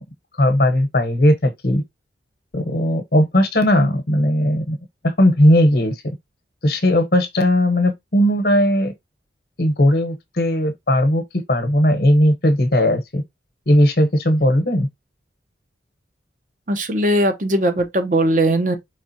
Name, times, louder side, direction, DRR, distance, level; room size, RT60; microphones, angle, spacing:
voice 1, 0.4-1.8 2.5-4.8 5.0-6.0 6.6-8.9 9.6-13.2 13.7-14.9, left 1 dB, 55° left, 1.0 m, -17 dB
voice 2, 16.7-18.8, right 1 dB, 45° right, 0.7 m, -19 dB
4.8 x 3.5 x 2.7 m
head